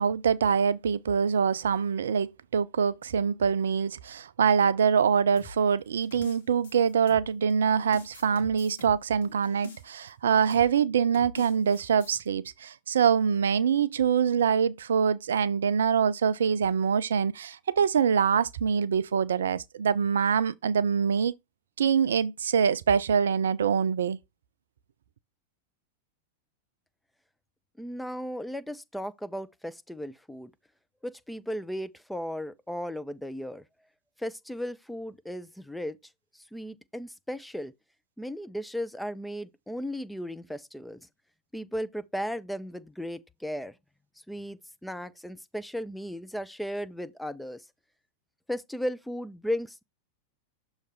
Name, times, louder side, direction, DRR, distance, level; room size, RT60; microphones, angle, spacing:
voice 1, 0.0-21.3 21.8-24.2, right 7 dB, 65° right, 0.4 m, -24 dB
sound 1, 5.4-7.5 7.9-10.1 10.5-10.7 11.1-12.2, left 2 dB, 65° left, 1.5 m, -46 dB
voice 2, 27.8-30.5 31.0-33.6 34.2-36.0 36.3-37.7 38.2-41.0 41.5-43.8 44.3-47.6 48.5-49.8, equal, 5° left, 0.5 m, -35 dB
6.5 x 3.1 x 5.3 m
figure-of-eight pair, 90°, 0 cm